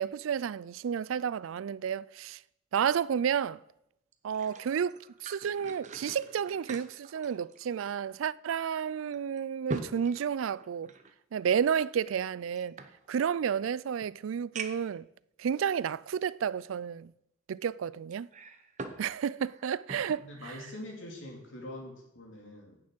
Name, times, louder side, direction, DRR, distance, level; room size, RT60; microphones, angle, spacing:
voice 1, 0.0-2.4 2.7-3.6 4.2-5.0 5.2-10.9 11.3-12.8 13.1-15.1 15.4-17.1 17.5-18.3 19.0-20.5, right 7 dB, 90° right, 0.4 m, -31 dB
sound 1, 4.1-8.1 8.5-8.6 9.1-11.1 12.0-13.4 14.0-14.1 14.5-15.0 15.7-15.8 18.1-19.1 19.4-20.2 20.7-20.9, right 3 dB, 40° right, 0.9 m, -43 dB
voice 2, 20.2-22.8, left 1 dB, 75° left, 2.7 m, -44 dB
8.9 x 7.0 x 7.7 m
head